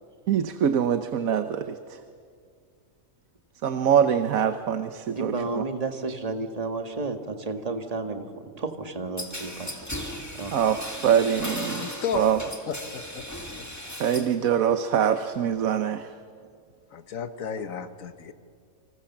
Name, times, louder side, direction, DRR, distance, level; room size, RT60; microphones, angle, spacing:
voice 1, 0.3-2.0 3.6-5.3 10.5-12.4 14.0-16.1, right 8 dB, 75° right, 9 dB, 1.3 m, -24 dB
voice 2, 5.1-9.8 10.3-10.5, right 3 dB, 25° right, 5 dB, 1.8 m, -32 dB
sound 1, 9.2-14.4 14.7-15.4, left 1 dB, 10° left, 2.3 m, -37 dB
voice 3, 11.7-12.3 12.7-13.3 13.6-13.7 14.1-14.3 16.9-18.3, left 7 dB, 70° left, 9 dB, 1.6 m, -33 dB
29.5 x 26.0 x 7.3 m, 2.2 s
omnidirectional pair, 1.5 m